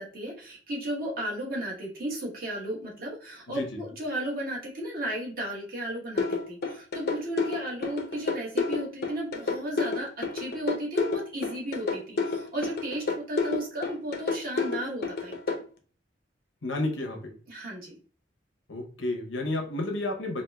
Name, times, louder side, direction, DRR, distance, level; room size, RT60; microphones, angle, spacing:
voice 1, 0.0-15.5 17.5-17.9, right 1 dB, 50° right, -3 dB, 1.2 m, -34 dB
voice 2, 3.5-3.8 16.6-17.3 18.7-20.4, left 2 dB, 90° left, 3 dB, 0.8 m, -31 dB
sound 1, 6.2-15.6, left 4 dB, 60° left, 0.6 m, -29 dB
4.2 x 2.6 x 2.3 m, 0.41 s
head